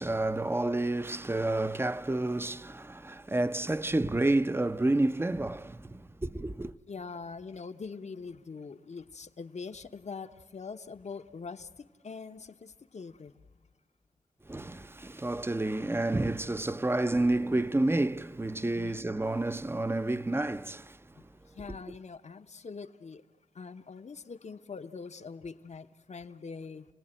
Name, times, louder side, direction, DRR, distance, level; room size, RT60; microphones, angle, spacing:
voice 1, 0.0-6.7 14.5-21.0, right 2 dB, 20° right, 0.7 m, -29 dB
voice 2, 6.9-13.3 18.7-19.1 21.2-21.3 21.5-23.2 23.5-26.9, left 5 dB, 60° left, 1.1 m, -43 dB
29.5 x 18.0 x 9.1 m
cardioid pair, 50°, 13 cm